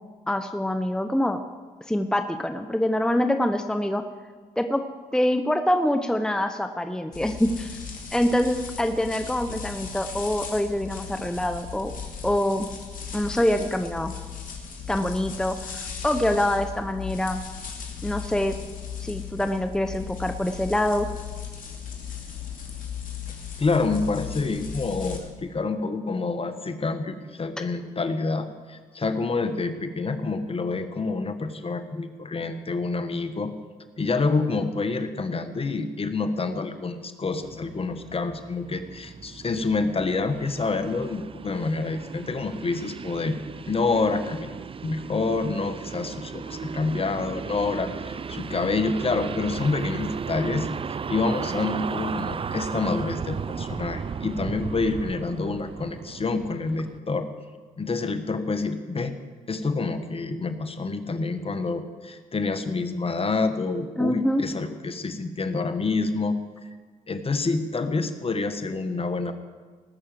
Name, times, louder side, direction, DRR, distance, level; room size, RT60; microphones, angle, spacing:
voice 1, 0.3-1.4 1.9-4.0 4.6-4.9 5.1-7.8 8.1-11.9 12.2-12.7 13.1-14.1 14.9-17.4 18.0-18.6 19.0-21.1 64.0-64.4, left 1 dB, 5° left, 8 dB, 0.8 m, -25 dB
sound 1, 7.1-25.2, left 7 dB, 60° left, 2.7 m, -37 dB
voice 2, 23.6-33.5 34.0-43.4 43.7-44.6 44.8-50.7 51.1-57.3 57.8-59.1 59.5-66.7 67.1-69.3, left 3 dB, 35° left, 9 dB, 1.4 m, -27 dB
sound 2, 37.4-57.0, right 6 dB, 35° right, 0.5 m, -35 dB
19.0 x 6.4 x 7.6 m, 1.5 s
supercardioid pair, 60°, 16 cm